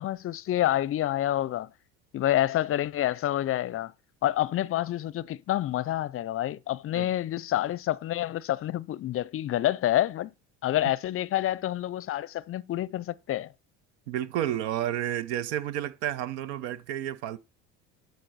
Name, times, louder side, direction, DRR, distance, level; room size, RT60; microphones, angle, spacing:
voice 1, 0.0-1.7 2.1-3.9 4.2-10.3 10.6-13.5, left 13 dB, 40° left, 0.5 m, -28 dB
voice 2, 14.1-17.4, right 11 dB, 85° right, 0.9 m, -31 dB
11.5 x 5.3 x 4.1 m
supercardioid pair, 95°, 34 cm